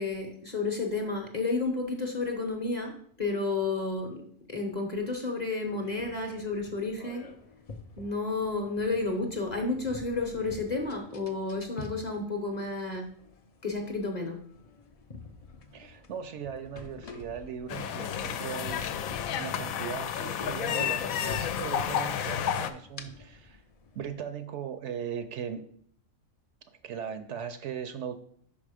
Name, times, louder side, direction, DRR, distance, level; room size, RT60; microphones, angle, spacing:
voice 1, 0.0-4.2 4.5-7.3 8.0-13.1 13.6-14.4, left 3 dB, 35° left, 3 dB, 0.8 m, -31 dB
sound 1, 5.6-24.1, left 4 dB, 50° left, 0.4 m, -49 dB
voice 2, 15.7-18.8 19.4-23.6 23.9-25.7 26.7-28.2, right 8 dB, 70° right, 9 dB, 0.8 m, -38 dB
sound 2, 17.7-22.7, left 9 dB, 90° left, 1.0 m, -31 dB
5.4 x 5.2 x 4.9 m, 0.63 s
omnidirectional pair, 1.4 m